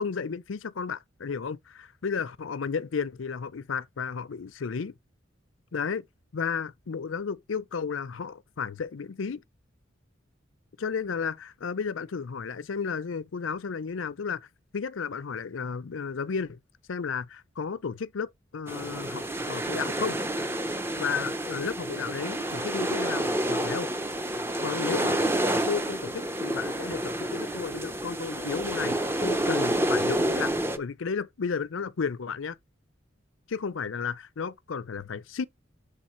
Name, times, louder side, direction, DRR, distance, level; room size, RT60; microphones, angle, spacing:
voice 1, 0.0-4.9 5.7-6.1 6.3-9.4 10.8-14.5 14.7-16.6 16.9-20.2 20.9-23.9 24.6-25.2 25.7-32.6 33.5-35.4, left 5 dB, 85° left, 0.5 m, -33 dB
sound 1, 18.7-30.8, right 1 dB, 10° right, 0.6 m, -29 dB
7.3 x 3.2 x 4.4 m
head